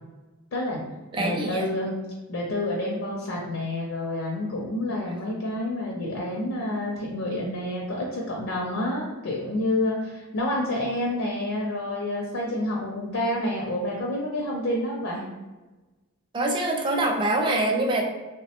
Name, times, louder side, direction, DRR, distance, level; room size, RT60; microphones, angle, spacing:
voice 1, 0.5-0.8 1.2-1.9 2.3-15.3, left 1 dB, 70° left, -2 dB, 0.5 m, -28 dB
voice 2, 1.1-1.7 16.3-18.0, right 2 dB, 20° right, 1 dB, 0.3 m, -24 dB
3.2 x 2.1 x 2.8 m, 1.2 s
head